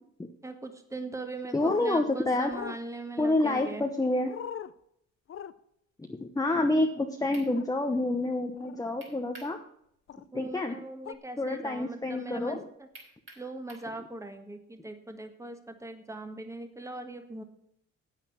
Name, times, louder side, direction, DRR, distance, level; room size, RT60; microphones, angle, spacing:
voice 1, 0.4-3.9 10.3-12.9 13.4-17.4, right 2 dB, 10° right, 6 dB, 1.6 m, -40 dB
voice 2, 1.5-2.5 3.2-4.3 6.0-9.6 10.3-10.9 11.4-12.7, left 2 dB, 10° left, 3 dB, 1.0 m, -28 dB
sound 1, 1.6-1.9 2.5-2.8 3.5-3.7 4.3-4.7 5.3-5.5 7.5-7.7 8.6-8.8 10.1-10.2 11.1-11.2, left 9 dB, 45° left, 0.7 m, -39 dB
sound 2, 7.3-7.5 9.0-9.6 9.9-10.0 12.9-13.9, right 2 dB, 45° right, 5.3 m, -49 dB
9.1 x 8.7 x 5.8 m, 0.71 s
cardioid pair, 90°, 30 cm